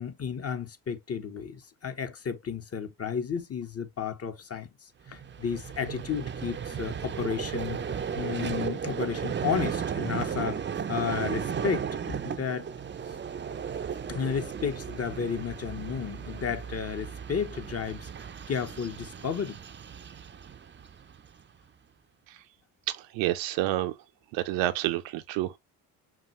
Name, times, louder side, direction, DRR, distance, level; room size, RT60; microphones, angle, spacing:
voice 1, 0.0-12.7 14.1-19.6, left 7 dB, 35° left, 0.9 m, -33 dB
Vehicle, 5.1-21.4, right 7 dB, 25° right, 0.5 m, -35 dB
voice 2, 22.9-23.9 24.3-25.6, right 14 dB, 75° right, 0.7 m, -29 dB
5.8 x 2.3 x 3.1 m
hypercardioid pair, 55°, 45 cm